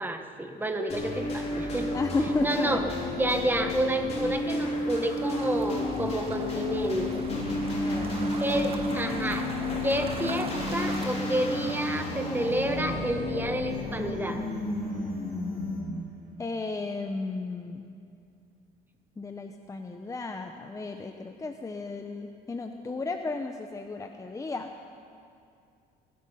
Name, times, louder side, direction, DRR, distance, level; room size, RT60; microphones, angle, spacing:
voice 1, 0.0-1.9 2.4-2.8 3.1-7.1 8.4-9.5 9.8-14.4, right 1 dB, 10° right, 5 dB, 1.4 m, -29 dB
sound 1, 0.9-16.0, left 2 dB, 40° left, 3.8 m, -32 dB
voice 2, 1.9-2.9 7.7-8.7 16.4-17.8 19.2-24.7, left 3 dB, 20° left, 5 dB, 0.8 m, -34 dB
sound 2, 4.9-11.1, right 3 dB, 35° right, 1.6 m, -42 dB
sound 3, 6.6-16.7, right 3 dB, 70° right, 2.5 m, -41 dB
21.0 x 11.5 x 5.7 m, 2.4 s
cardioid pair, 110°, 17 cm